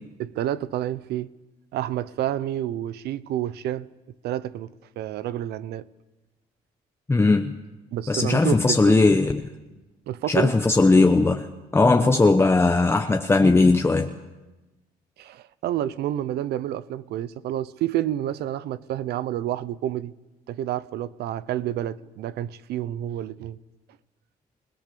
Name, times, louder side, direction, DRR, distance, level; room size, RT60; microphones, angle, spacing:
voice 1, 0.2-1.3 1.7-3.9 4.2-5.8 7.9-8.9 10.1-10.5 12.0-12.4 15.2-20.1 20.5-23.6, right 12 dB, 75° right, 0.8 m, -29 dB
voice 2, 7.1-7.6 8.1-9.4 10.3-11.5 11.7-14.1, left 3 dB, 15° left, 1.0 m, -18 dB
29.0 x 18.0 x 6.9 m
cardioid pair, 110°, 17 cm